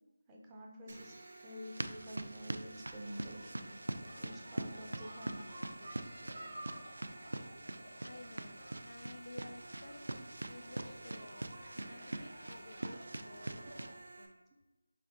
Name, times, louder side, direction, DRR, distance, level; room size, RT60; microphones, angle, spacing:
voice 1, 0.3-3.7 4.2-5.4, equal, 10° right, -2 dB, 0.3 m, -49 dB
sound 1, 0.9-14.3, right 2 dB, 65° right, 0.7 m, -54 dB
sound 2, 1.6-13.9, right 2 dB, 90° right, 0.3 m, -44 dB
sound 3, 3.0-13.9, right 1 dB, 45° right, 1.0 m, -53 dB
voice 2, 8.0-8.6 8.9-11.5 11.8-13.9 14.2-14.4, left 2 dB, 70° left, 9 dB, 0.3 m, -53 dB
3.8 x 3.4 x 3.5 m, 1.1 s
figure-of-eight pair, 175°, 0 cm